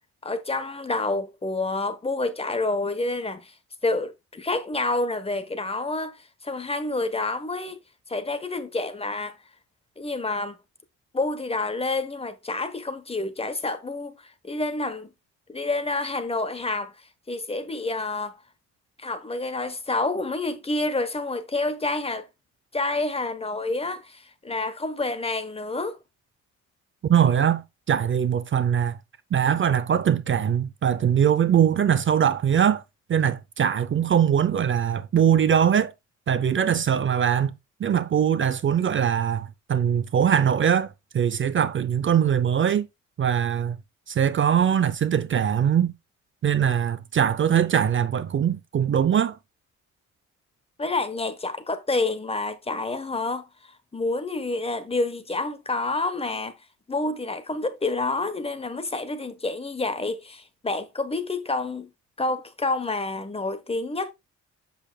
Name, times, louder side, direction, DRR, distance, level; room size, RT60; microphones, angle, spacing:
voice 1, 0.2-3.5 3.8-7.8 8.1-9.4 10.0-10.6 11.1-15.1 15.5-16.9 17.3-18.4 19.0-22.3 22.7-26.0 50.8-56.6 56.9-61.9 62.2-64.1, left 2 dB, 20° left, 1.1 m, -28 dB
voice 2, 27.0-27.6 27.9-29.0 29.3-32.8 33.1-35.9 36.3-37.5 37.8-42.9 43.2-43.8 44.1-45.9 46.4-49.4, right 8 dB, 40° right, 0.6 m, -22 dB
8.0 x 6.8 x 2.3 m
cardioid pair, 90°, 30 cm